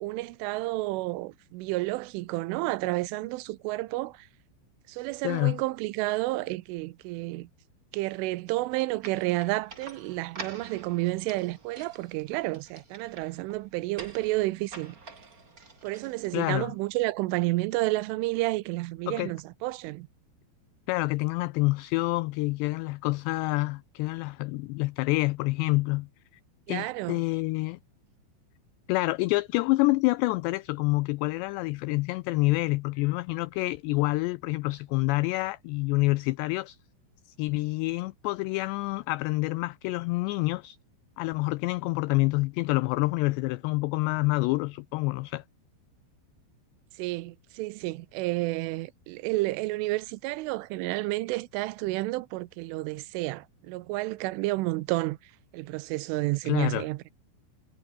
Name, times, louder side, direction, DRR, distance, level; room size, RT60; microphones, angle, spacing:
voice 1, 0.0-4.3 4.9-7.5 7.9-15.0 15.8-20.1 26.7-27.2 47.0-55.2 55.5-57.1, right 20 dB, 90° right, 3.4 m, -30 dB
voice 2, 5.2-5.6 16.3-16.7 19.1-19.3 20.9-26.1 26.7-27.8 28.9-36.8 37.4-40.8 41.2-45.4 56.5-56.9, left 22 dB, 90° left, 2.4 m, -27 dB
sound 1, 9.0-16.7, right 4 dB, 25° right, 2.5 m, -47 dB
omnidirectional pair, 5.5 m